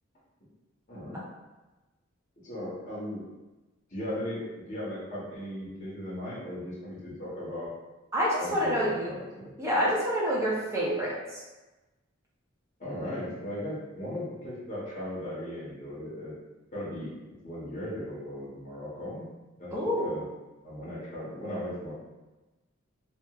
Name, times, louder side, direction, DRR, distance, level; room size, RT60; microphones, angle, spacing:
voice 1, 0.9-1.3 2.4-3.3 3.9-7.7 8.4-9.5 12.8-16.4 16.7-17.1 17.4-19.2 19.6-19.7 20.0-20.3 20.6-21.9, left 1 dB, 35° left, -9 dB, 0.8 m, -37 dB
voice 2, 8.1-9.1 9.6-11.4 19.7-20.1, equal, 15° right, -6 dB, 0.6 m, -27 dB
2.8 x 2.4 x 2.3 m, 1.1 s
head